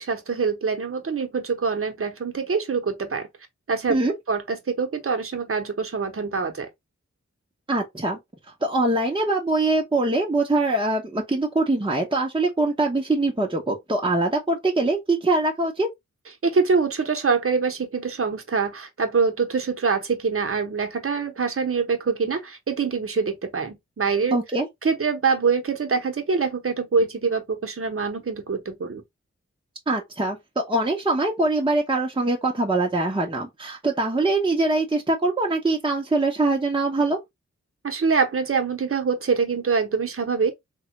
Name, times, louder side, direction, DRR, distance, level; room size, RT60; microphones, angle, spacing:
voice 1, 0.0-3.3 3.7-4.0 4.3-6.7 16.4-24.4 24.8-29.0 37.8-40.5, right 5 dB, 50° right, 0.9 m, -24 dB
voice 2, 7.7-8.2 8.6-15.9 24.3-24.7 29.9-30.4 30.7-37.2, right 2 dB, 15° right, 0.7 m, -23 dB
3.3 x 2.2 x 2.8 m
wide cardioid pair, 70°, 29 cm